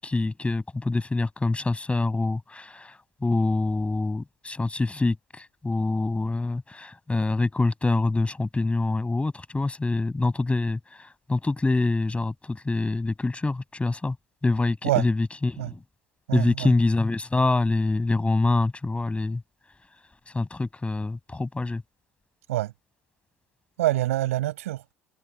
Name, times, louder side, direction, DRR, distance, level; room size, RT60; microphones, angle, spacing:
voice 1, 0.0-14.2 14.4-15.8 16.3-19.4 20.3-21.8, left 2 dB, 15° left, 7.9 m, -25 dB
voice 2, 16.3-16.7 22.5-22.7 23.8-24.8, right 15 dB, 80° right, 7.6 m, -25 dB
hypercardioid pair, 65°, 7 cm